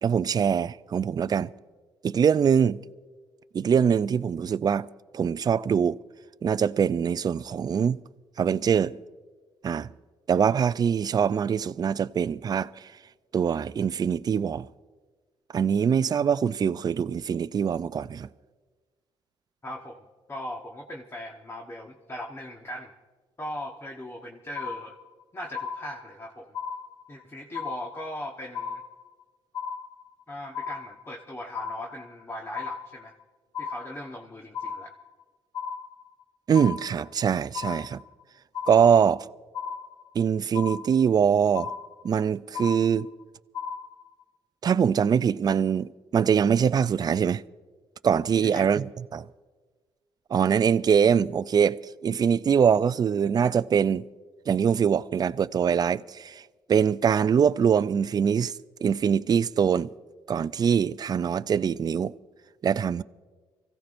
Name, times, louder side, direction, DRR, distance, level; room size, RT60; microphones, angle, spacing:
voice 1, 0.0-1.5 2.0-2.8 3.5-4.9 5.1-6.0 6.4-8.0 8.4-9.0 9.6-9.9 10.3-12.9 13.3-14.7 15.5-18.3 36.5-38.0 38.7-39.3 40.1-41.7 42.0-43.1 44.6-47.4 48.0-49.3 50.3-54.0 54.5-56.4 56.7-58.5 58.8-59.9 60.3-62.1 62.6-63.0, right 7 dB, 40° right, 0.4 m, -23 dB
voice 2, 19.6-22.9 23.4-25.0 25.3-26.5 27.1-28.8 30.3-33.2 33.6-34.9 48.4-48.7, left 1 dB, 25° left, 1.2 m, -39 dB
sound 1, 24.5-25.2 25.5-26.2 26.5-27.2 27.5-28.2 28.5-29.2 29.5-30.2 30.5-31.2 31.5-32.2 32.5-33.2 33.5-34.2 34.5-35.2 35.5-36.2 36.5-37.2 37.5-38.2 38.5-39.2 39.5-40.2 40.5-41.2 41.5-42.2 42.5-43.2 43.5-44.2, left 6 dB, 40° left, 1.7 m, -36 dB
25.0 x 16.0 x 2.6 m
cardioid pair, 75°, 10 cm